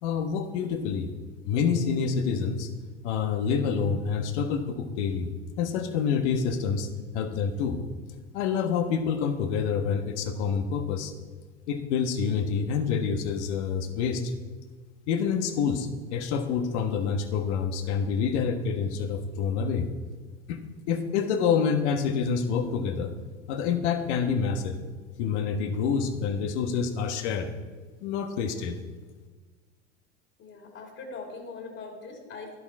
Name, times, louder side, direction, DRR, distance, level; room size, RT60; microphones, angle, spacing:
voice 1, 0.0-1.1 1.4-2.7 3.0-5.3 5.6-6.9 7.1-7.8 8.3-11.1 11.7-14.3 15.1-19.9 20.5-20.6 20.9-23.1 23.5-24.8 25.2-27.5 28.0-28.8, left 6 dB, 70° left, 8 dB, 1.4 m, -27 dB
voice 2, 30.4-32.6, left 4 dB, 45° left, 1 dB, 3.3 m, -41 dB
12.0 x 11.0 x 4.8 m, 1.4 s
hypercardioid pair, 90°, 35 cm